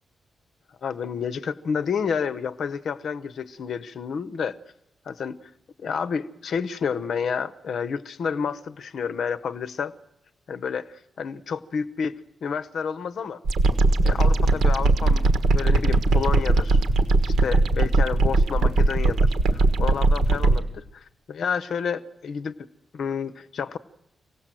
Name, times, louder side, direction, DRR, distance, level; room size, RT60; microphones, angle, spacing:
voice 1, 0.8-4.6 5.1-5.5 5.8-9.9 10.5-12.1 12.4-13.4 14.0-16.8 17.2-22.6 22.9-23.8, left 6 dB, 55° left, 12 dB, 0.8 m, -30 dB
sound 1, 13.5-20.6, right 2 dB, 85° right, 1.4 m, -19 dB
25.5 x 17.5 x 7.6 m, 0.86 s
wide cardioid pair, 170°, 0 cm